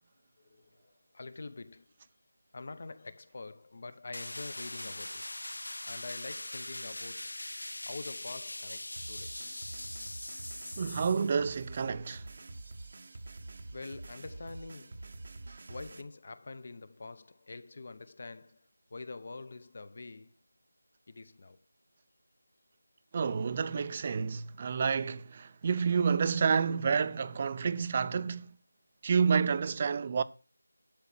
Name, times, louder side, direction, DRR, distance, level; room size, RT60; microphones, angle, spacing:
voice 1, 0.4-1.9 2.5-5.3 5.8-7.3 7.8-9.3 13.7-15.2 15.7-20.4 21.1-21.6, left 3 dB, 40° left, 0.9 m, -45 dB
sound 1, 4.1-11.3, left 1 dB, 80° left, 0.4 m, -41 dB
sound 2, 9.0-16.0, right 2 dB, 45° right, 0.9 m, -46 dB
voice 2, 10.8-12.3 23.1-28.6 29.0-30.2, right 6 dB, 25° right, 0.5 m, -29 dB
12.0 x 5.0 x 5.9 m
figure-of-eight pair, 170°, 0 cm